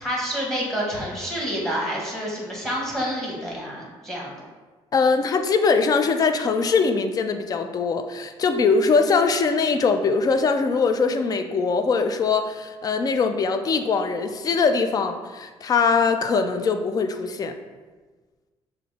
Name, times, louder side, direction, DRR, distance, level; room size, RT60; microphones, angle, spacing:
voice 1, 0.0-4.3, equal, 5° left, -3 dB, 1.2 m, -28 dB
voice 2, 4.9-17.6, left 4 dB, 35° left, 7 dB, 0.4 m, -22 dB
5.8 x 2.1 x 3.3 m, 1.3 s
cardioid pair, 105°, 11 cm